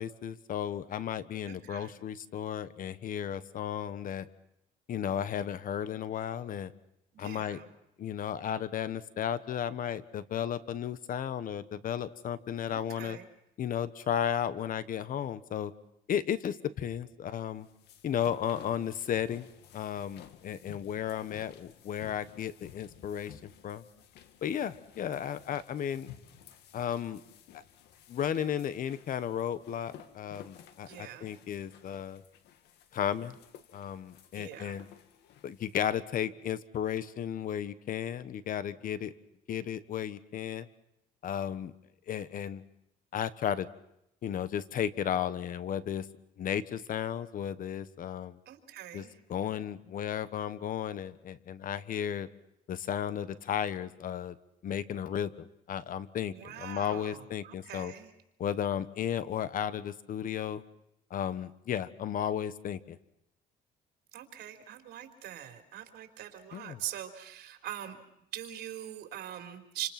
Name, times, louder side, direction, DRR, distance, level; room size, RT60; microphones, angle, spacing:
voice 1, 0.0-4.3 4.9-6.7 7.2-7.6 8.0-13.2 13.6-15.7 16.1-17.7 18.0-19.5 19.7-23.8 24.4-26.1 26.7-27.2 28.1-32.2 32.9-33.4 33.7-34.9 35.4-39.1 39.5-40.7 41.2-41.7 42.1-42.6 43.1-43.7 44.2-46.1 46.4-48.4 48.9-49.0 49.3-52.3 52.7-54.3 54.6-57.9 58.4-60.6 61.1-63.0 66.5-66.8, left 9 dB, 55° left, 14 dB, 1.4 m, -34 dB
voice 2, 1.4-1.9 7.2-7.7 12.7-13.3 30.9-31.3 34.3-34.8 48.5-49.2 56.3-58.1 64.1-68.0 68.3-69.9, right 12 dB, 75° right, 6 dB, 4.2 m, -43 dB
sound 1, 17.4-35.8, left 9 dB, 80° left, 2.3 m, -55 dB
28.5 x 26.5 x 6.1 m, 0.81 s
cardioid pair, 110°, 17 cm